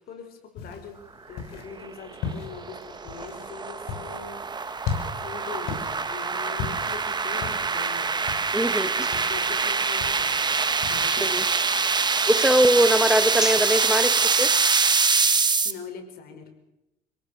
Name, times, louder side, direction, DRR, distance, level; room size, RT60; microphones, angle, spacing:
voice 1, 0.1-1.0 1.3-4.4 5.1-8.1 8.6-10.5 10.9-11.3 15.6-16.5, left 5 dB, 65° left, 5.1 m, -42 dB
sound 1, 0.5-11.5, left 6 dB, 90° left, 6.3 m, -38 dB
sound 2, 1.8-15.7, right 4 dB, 25° right, 1.6 m, -24 dB
voice 2, 8.5-9.1 11.1-11.4 12.3-14.5, right 1 dB, 5° right, 1.5 m, -22 dB
27.0 x 18.0 x 6.7 m
cardioid pair, 110°, 17 cm